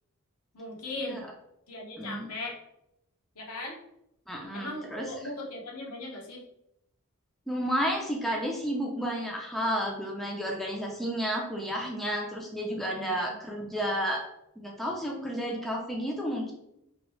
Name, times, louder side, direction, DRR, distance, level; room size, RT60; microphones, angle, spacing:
voice 1, 0.5-1.2 1.7-2.6 3.3-3.8 4.5-6.4 12.9-13.1, left 2 dB, 80° left, -2 dB, 0.9 m, -38 dB
voice 2, 2.0-2.3 4.3-5.3 7.5-14.2 14.6-16.5, equal, ahead, -2 dB, 0.5 m, -32 dB
2.9 x 2.7 x 3.1 m, 0.81 s
head